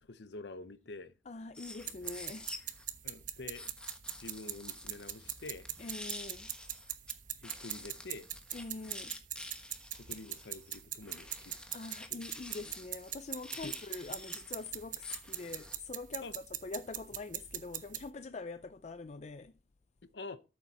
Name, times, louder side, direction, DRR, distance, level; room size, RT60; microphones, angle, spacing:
voice 1, 0.0-1.1 3.0-3.7 4.2-5.7 7.4-8.3 9.9-11.6 13.6-13.7 16.2-16.3 20.1-20.4, left 3 dB, 70° left, 0.8 m, -47 dB
voice 2, 1.3-2.5 5.8-6.5 8.5-9.2 11.7-19.5, left 3 dB, 40° left, 0.4 m, -44 dB
sound 1, 1.5-2.9 3.5-7.1 7.4-15.8, left 1 dB, 5° left, 1.2 m, -49 dB
sound 2, 1.8-18.1, right 11 dB, 45° right, 0.9 m, -42 dB
13.0 x 7.3 x 4.2 m
head